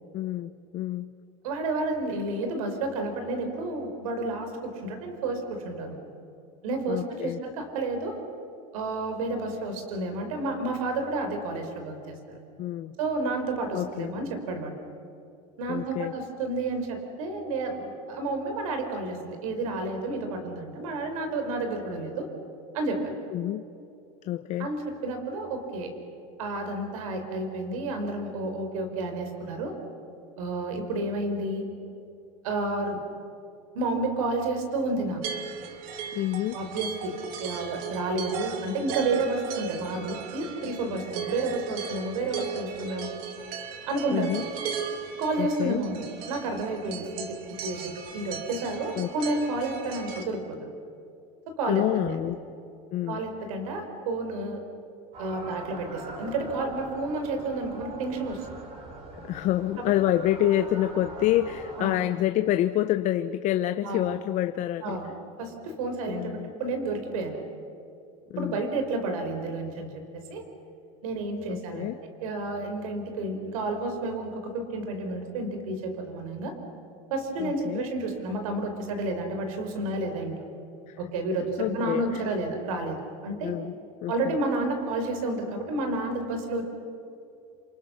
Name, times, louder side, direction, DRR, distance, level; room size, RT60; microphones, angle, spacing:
voice 1, 0.1-1.1 6.9-7.4 12.6-13.0 13.7-14.2 15.7-16.1 23.3-23.7 24.2-24.7 36.1-36.6 44.1-44.4 45.4-45.8 49.0-49.1 51.7-52.4 52.9-53.2 59.2-65.0 66.1-66.5 68.3-68.6 71.5-72.0 77.4-77.9 80.9-81.0 81.6-82.2 83.4-83.7 84.0-84.4, left 13 dB, 45° left, 10 dB, 0.8 m, -27 dB
voice 2, 1.4-6.0 6.6-8.2 8.7-12.2 13.0-14.7 15.6-22.3 22.7-23.1 24.6-24.8 25.0-25.9 26.4-29.7 30.4-31.7 32.4-33.0 33.7-35.2 36.5-37.1 37.4-43.1 43.9-44.4 45.2-46.0 46.3-47.2 47.6-50.7 51.6-52.2 53.1-54.6 55.2-58.5 61.8-62.0 63.8-64.1 64.8-67.4 68.4-69.9 70.3-70.4 71.0-71.9 72.2-76.5 77.1-80.3 81.0-83.0 83.2-83.5 84.1-86.7, right 2 dB, 90° right, 6 dB, 4.8 m, -30 dB
sound 1, 35.2-50.2, right 7 dB, 60° right, 2.6 m, -37 dB
sound 2, 55.1-61.8, right 2 dB, 35° right, 5.0 m, -42 dB
28.0 x 27.5 x 6.4 m, 2.6 s
supercardioid pair, 135°, 17 cm